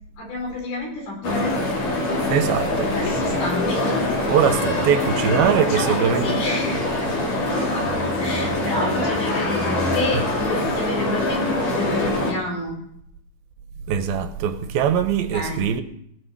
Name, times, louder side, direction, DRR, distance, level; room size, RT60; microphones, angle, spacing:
voice 1, 0.2-1.7 2.9-3.9 5.6-12.8 15.3-15.6, left 1 dB, 80° left, 6.4 m, -30 dB
sound 1, 1.2-12.3, left 2 dB, 55° left, 4.4 m, -24 dB
voice 2, 2.3-2.9 4.3-6.2 13.9-15.8, right 8 dB, 85° right, 2.6 m, -21 dB
18.5 x 6.5 x 7.2 m
omnidirectional pair, 4.4 m